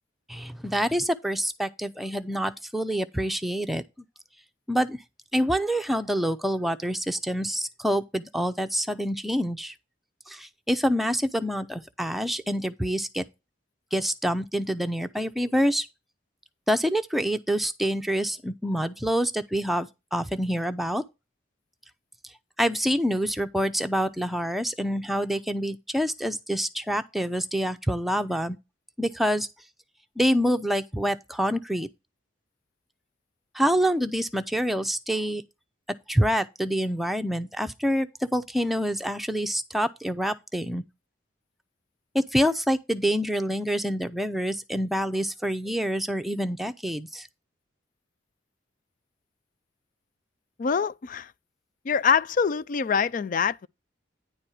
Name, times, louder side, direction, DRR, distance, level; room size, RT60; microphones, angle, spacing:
voice 1, 0.3-3.8 4.7-5.0 5.3-9.7 10.3-13.2 13.9-15.9 16.7-21.0 22.6-28.6 29.0-29.5 30.2-31.9 33.5-35.4 36.1-40.8 42.1-47.3, equal, ahead, 0.6 m, -26 dB
voice 2, 50.6-51.3 51.8-53.7, left 6 dB, 45° left, 0.4 m, -24 dB
10.0 x 4.3 x 4.9 m
head